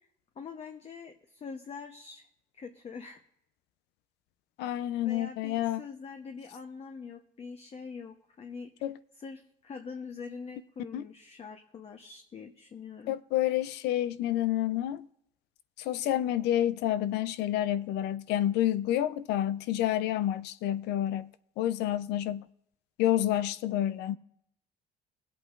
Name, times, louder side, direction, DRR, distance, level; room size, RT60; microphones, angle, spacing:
voice 1, 0.4-2.3 2.5-3.2 5.0-8.9 9.2-13.1, left 5 dB, 40° left, 0.9 m, -44 dB
voice 2, 4.6-5.8 8.8-8.9 10.9-11.0 13.1-15.1 15.8-21.3 21.6-22.5 23.0-24.2, left 12 dB, 85° left, 0.5 m, -29 dB
23.0 x 8.4 x 2.5 m
cardioid pair, 110°, 17 cm